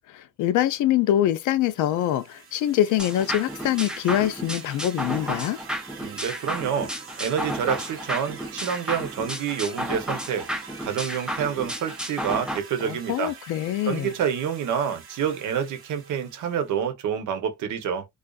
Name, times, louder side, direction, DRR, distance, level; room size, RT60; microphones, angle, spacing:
voice 1, 0.1-5.6 12.8-14.1, left 12 dB, 80° left, 0.5 m, -24 dB
sound 1, 1.7-16.8, right 5 dB, 45° right, 0.7 m, -45 dB
sound 2, 3.0-12.6, equal, 5° right, 0.4 m, -32 dB
voice 2, 6.0-6.9 7.2-10.5 10.8-13.3 13.9-18.1, right 8 dB, 75° right, 0.8 m, -28 dB
2.5 x 2.4 x 2.3 m
cardioid pair, 90°, 30 cm